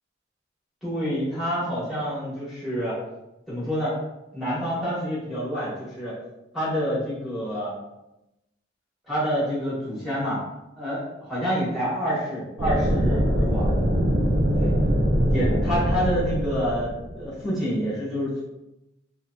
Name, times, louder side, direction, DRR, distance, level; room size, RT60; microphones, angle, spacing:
voice 1, 0.8-3.0 3.5-3.9 4.3-6.2 6.5-7.7 9.1-10.4 10.8-13.7 14.5-14.7 15.3-18.4, equal, ahead, -10 dB, 1.2 m, -27 dB
sound 1, 12.6-17.4, equal, 40° right, 0.5 m, -23 dB
2.9 x 2.6 x 2.3 m, 0.93 s
head